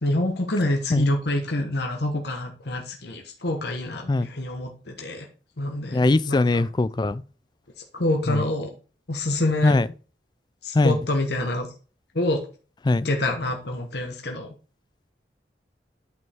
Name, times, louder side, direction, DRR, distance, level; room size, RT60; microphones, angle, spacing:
voice 1, 0.0-5.3 5.6-6.7 7.9-8.7 9.1-9.8 10.6-11.7 12.1-12.4 13.0-14.5, left 1 dB, 60° left, 1.2 m, -26 dB
voice 2, 5.9-7.2 8.3-8.4 9.6-9.9 10.7-11.0 12.9-13.1, left 2 dB, 25° left, 0.3 m, -21 dB
9.4 x 5.4 x 3.5 m
head